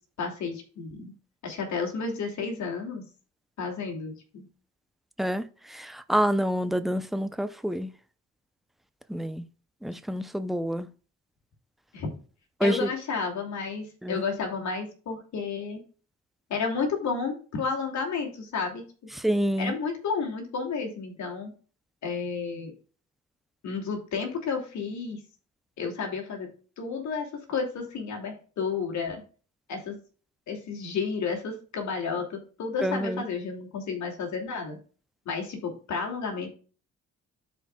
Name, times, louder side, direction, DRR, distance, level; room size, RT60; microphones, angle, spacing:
voice 1, 0.2-1.1 1.4-3.0 3.6-4.5 11.9-12.1 12.6-15.8 16.5-18.8 19.6-21.5 22.0-22.7 23.6-25.2 25.8-26.5 26.8-29.2 29.7-30.0 30.5-34.8 35.3-36.5, left 5 dB, 70° left, 2.7 m, -31 dB
voice 2, 5.7-7.9 9.1-9.4 9.8-10.9 12.6-12.9 14.0-14.2 19.2-19.7 32.8-33.2, equal, ahead, 0.7 m, -27 dB
13.0 x 4.7 x 2.4 m
cardioid pair, 90°, 30 cm